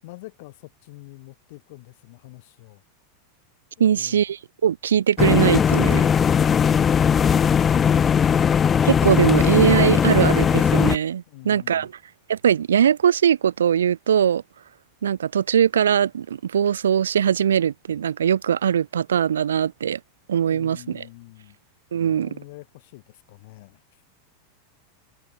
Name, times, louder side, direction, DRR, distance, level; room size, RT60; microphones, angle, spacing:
voice 1, 0.0-2.8 3.8-4.2 11.3-11.9 20.5-21.6 22.1-23.8, left 22 dB, 60° left, 7.9 m, -45 dB
voice 2, 3.8-6.0 8.8-11.9 12.3-14.4 15.0-20.0 20.3-21.0 21.9-22.3, right 8 dB, 85° right, 0.4 m, -21 dB
sound 1, 5.2-11.0, left 7 dB, 25° left, 0.8 m, -18 dB
hypercardioid pair, 95°, 0 cm